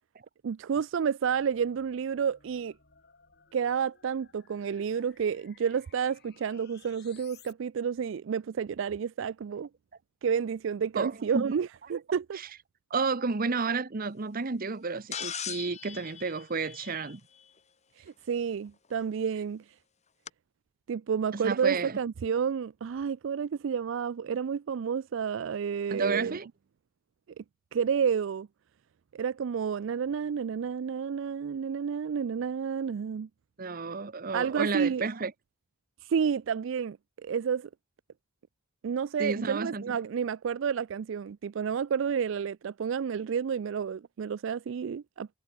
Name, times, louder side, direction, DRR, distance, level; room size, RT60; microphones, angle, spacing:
voice 1, 0.4-2.7 3.5-9.7 10.2-12.4 18.0-19.6 20.9-26.4 27.4-27.5 27.7-28.5 29.1-33.3 34.3-35.0 36.0-37.7 38.8-45.3, right 7 dB, 65° right, 0.4 m, -30 dB
sound 1, 1.2-7.5, left 7 dB, 50° left, 6.6 m, -60 dB
voice 2, 11.0-11.5 12.4-12.5 12.9-17.2 21.3-22.0 25.9-26.5 33.6-35.3 39.2-39.8, right 4 dB, 45° right, 0.9 m, -31 dB
sound 2, 15.1-17.4 19.0-19.1 20.3-20.4, left 8 dB, 35° left, 2.8 m, -39 dB
head